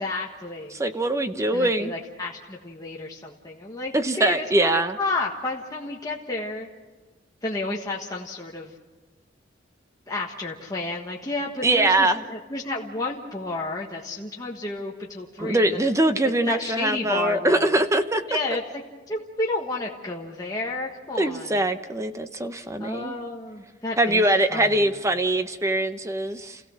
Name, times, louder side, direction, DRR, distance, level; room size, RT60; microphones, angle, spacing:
voice 1, 0.0-0.8 1.5-6.7 7.4-8.7 10.1-15.9 16.5-17.8 18.3-18.8 19.1-21.6 22.8-24.2 24.5-24.9, left 2 dB, 20° left, -2 dB, 1.4 m, -31 dB
voice 2, 0.7-1.9 3.9-5.0 11.6-12.3 15.4-18.2 21.2-23.2 24.0-26.6, right 1 dB, 15° right, 9 dB, 0.8 m, -22 dB
29.5 x 16.0 x 6.4 m, 1.3 s
head